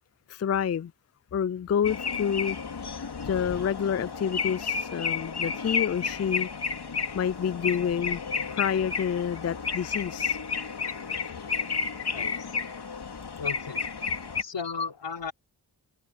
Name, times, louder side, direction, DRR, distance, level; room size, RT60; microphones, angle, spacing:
voice 1, 0.3-0.9 1.3-2.6 3.2-6.5 7.1-8.2 8.5-10.4, left 8 dB, 40° left, 0.4 m, -28 dB
sound 1, 1.8-14.4, left 5 dB, 65° left, 2.8 m, -32 dB
voice 2, 12.1-12.7 13.4-13.8 14.4-15.3, left 5 dB, 85° left, 4.2 m, -35 dB
cardioid pair, 60°, 42 cm